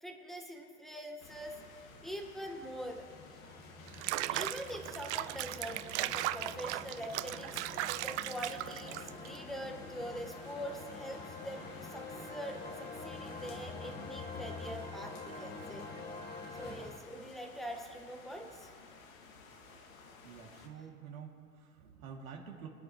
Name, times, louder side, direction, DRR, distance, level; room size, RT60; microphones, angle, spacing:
voice 1, 0.0-1.5 2.0-3.0 4.3-7.6 8.0-15.9 16.6-18.7, equal, ahead, 2 dB, 1.5 m, -44 dB
sound 1, 1.2-20.7, left 4 dB, 70° left, 2.1 m, -55 dB
sound 2, 2.3-17.0, left 3 dB, 20° left, 1.4 m, -47 dB
Water / Bathtub (filling or washing), 3.9-9.4, right 16 dB, 55° right, 0.5 m, -37 dB
voice 2, 20.0-22.7, right 7 dB, 70° right, -1 dB, 2.6 m, -49 dB
25.5 x 8.9 x 3.1 m, 2.2 s
hypercardioid pair, 110°, 43 cm